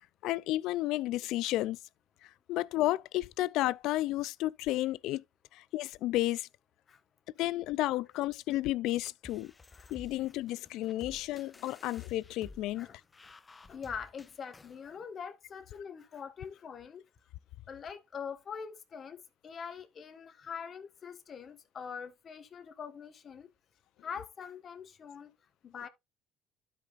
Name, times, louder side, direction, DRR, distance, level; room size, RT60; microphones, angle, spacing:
voice 1, 0.2-1.8 2.5-5.2 5.5-6.5 7.4-9.5 9.9-12.9, left 16 dB, 75° left, 0.3 m, -32 dB
sound 1, 9.2-14.8, left 3 dB, 25° left, 0.6 m, -54 dB
voice 2, 12.7-13.4 13.6-17.1 17.7-23.5 24.0-25.3 25.6-25.9, left 6 dB, 45° left, 1.3 m, -44 dB
12.5 x 5.2 x 2.5 m
supercardioid pair, 80°, 0 cm